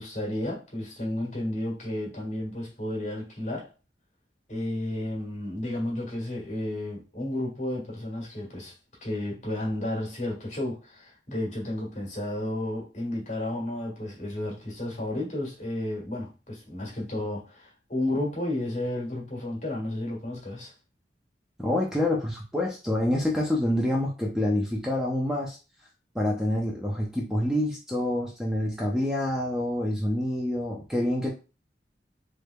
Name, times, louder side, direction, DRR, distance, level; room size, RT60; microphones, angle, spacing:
voice 1, 0.0-3.7 4.5-8.7 9.0-20.7, left 1 dB, 40° left, -3 dB, 1.5 m, -32 dB
voice 2, 21.6-25.6 26.1-31.3, left 1 dB, 5° right, -2 dB, 0.4 m, -27 dB
3.4 x 3.1 x 2.2 m, 0.32 s
head